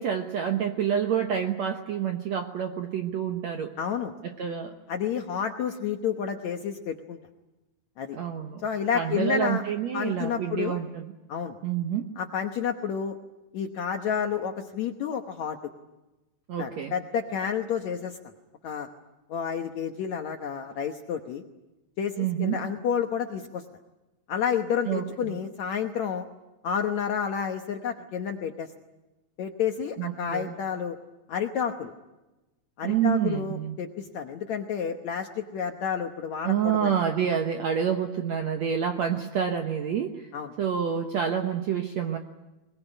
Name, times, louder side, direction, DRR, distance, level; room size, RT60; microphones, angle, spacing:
voice 1, 0.0-3.7 4.2-4.7 8.1-8.6 8.9-11.1 11.6-12.0 16.5-16.9 22.2-22.6 24.9-25.4 30.0-30.5 32.8-33.8 36.4-40.3 40.6-42.2, right 8 dB, 70° right, 5 dB, 1.7 m, -28 dB
voice 2, 3.8-4.1 4.9-7.2 8.0-8.2 8.6-9.6 9.9-10.8 11.3-11.6 12.2-13.1 13.5-15.6 16.6-18.2 18.6-18.9 19.3-21.4 22.0-23.6 24.3-26.3 26.6-28.7 29.4-31.0 31.3-31.9 32.8-36.9 40.3-40.5, left 7 dB, 65° left, 5 dB, 1.8 m, -30 dB
21.5 x 21.5 x 10.0 m, 1.0 s
omnidirectional pair, 4.5 m